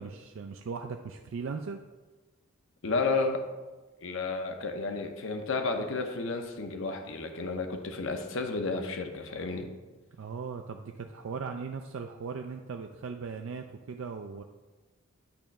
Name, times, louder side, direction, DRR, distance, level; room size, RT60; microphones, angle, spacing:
voice 1, 0.0-1.8 10.1-14.4, right 5 dB, 60° right, 5 dB, 0.3 m, -38 dB
voice 2, 2.8-3.4 4.0-9.7, left 3 dB, 60° left, 5 dB, 0.7 m, -32 dB
8.7 x 3.1 x 5.7 m, 1.2 s
head